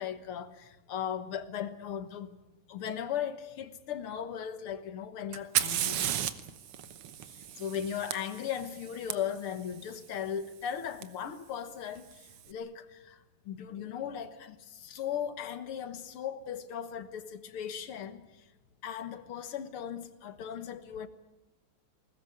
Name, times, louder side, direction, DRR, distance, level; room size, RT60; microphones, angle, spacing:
voice 1, 0.0-2.3 2.7-6.1 7.3-13.2 13.5-18.3 18.8-21.1, left 9 dB, 90° left, 2.3 m, -37 dB
Fire, 5.3-9.1 11.0-11.1 12.0-12.4, right 10 dB, 90° right, 2.0 m, -34 dB
21.5 x 19.0 x 9.9 m
omnidirectional pair, 2.3 m